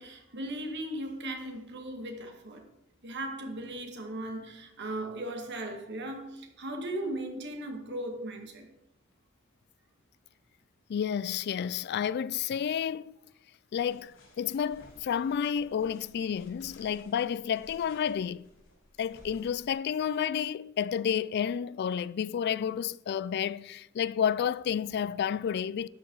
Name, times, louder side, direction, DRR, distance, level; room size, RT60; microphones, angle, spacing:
voice 1, 0.0-2.7 3.0-8.7, right 1 dB, 55° right, 2.1 m, -37 dB
voice 2, 10.9-13.2 13.7-18.5 19.0-25.9, left 8 dB, 50° left, 0.3 m, -30 dB
sound 1, 13.8-19.7, left 1 dB, 90° left, 5.0 m, -57 dB
12.5 x 9.6 x 4.0 m
head